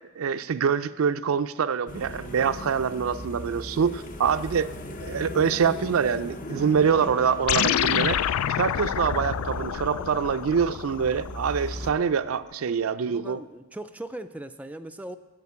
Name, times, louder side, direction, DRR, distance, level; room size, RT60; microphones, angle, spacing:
voice 1, 0.2-4.7 5.0-8.2 8.6-13.4, right 6 dB, 70° right, 12 dB, 0.4 m, -25 dB
sound 1, 1.9-11.9, left 1 dB, 40° left, 0.7 m, -38 dB
sound 2, 7.5-12.1, left 10 dB, 90° left, 0.3 m, -28 dB
voice 2, 8.3-8.6 10.0-10.1 13.1-15.2, right 1 dB, 5° right, 8 dB, 0.3 m, -39 dB
8.0 x 7.6 x 8.5 m, 1.1 s
head